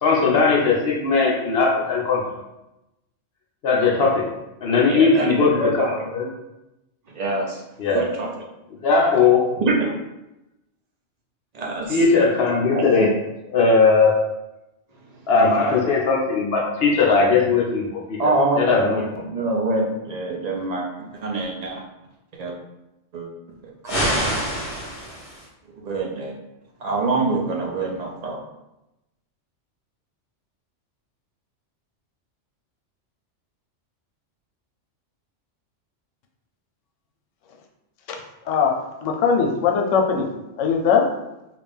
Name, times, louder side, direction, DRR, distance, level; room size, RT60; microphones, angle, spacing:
voice 1, 0.0-2.2 3.6-4.3 4.6-6.3 7.8-8.1 8.8-9.5 11.9-13.1 13.5-14.2 15.3-18.2 18.6-19.0, left 4 dB, 60° left, -1 dB, 0.8 m, -18 dB
voice 2, 4.9-5.9 7.1-7.6 7.9-8.3 9.6-9.9 11.5-12.0 12.7-13.1 18.2-19.0 19.3-21.8 22.4-22.5 23.1-23.3 23.8-24.0 25.8-26.4 26.8-28.4, right 2 dB, 50° right, -2 dB, 0.5 m, -25 dB
sound 1, 23.9-25.5, equal, 40° left, 1.3 m, -25 dB
voice 3, 38.5-40.3 40.6-41.0, left 6 dB, 90° left, 3 dB, 0.9 m, -20 dB
3.3 x 2.5 x 3.5 m, 0.93 s
omnidirectional pair, 1.3 m